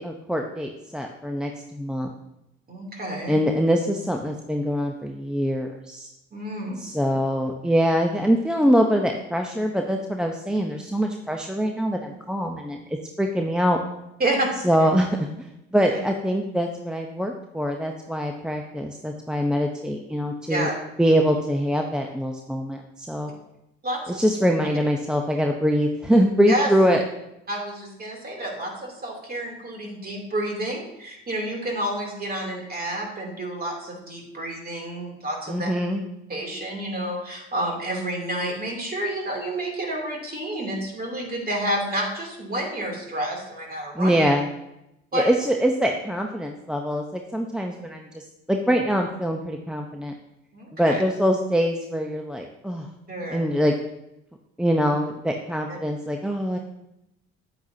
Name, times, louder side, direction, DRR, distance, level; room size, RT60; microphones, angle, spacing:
voice 1, 0.0-2.1 3.3-6.1 6.8-13.8 14.6-15.3 15.7-20.7 21.0-23.3 24.1-27.0 35.5-36.0 43.9-44.5 45.1-48.2 48.5-50.1 50.7-52.9 53.3-53.7 54.6-56.6, equal, 5° right, 2 dB, 0.8 m, -23 dB
voice 2, 2.7-3.3 6.3-6.8 14.2-14.5 14.8-14.9 15.9-16.0 20.5-20.7 23.8-24.2 26.5-26.7 27.5-35.7 36.3-44.1 45.1-45.3 50.5-51.0 53.1-53.5 55.7-55.8, right 1 dB, 30° right, 0 dB, 2.9 m, -29 dB
9.4 x 8.4 x 2.8 m, 0.87 s
hypercardioid pair, 60°, 30 cm